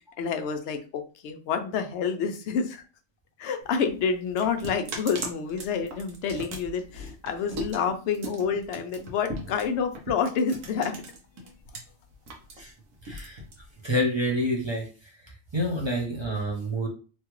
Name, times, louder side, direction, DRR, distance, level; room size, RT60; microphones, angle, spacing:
voice 1, 0.2-2.8 3.4-10.9, left 6 dB, 65° left, 6 dB, 0.8 m, -28 dB
sound 1, 3.6-11.8 12.1-14.0, right 1 dB, 75° right, 1.1 m, -39 dB
voice 2, 13.0-13.4 13.8-15.1 15.5-16.9, equal, 25° right, -2 dB, 0.6 m, -28 dB
3.1 x 2.4 x 3.0 m, 0.36 s
omnidirectional pair, 1.4 m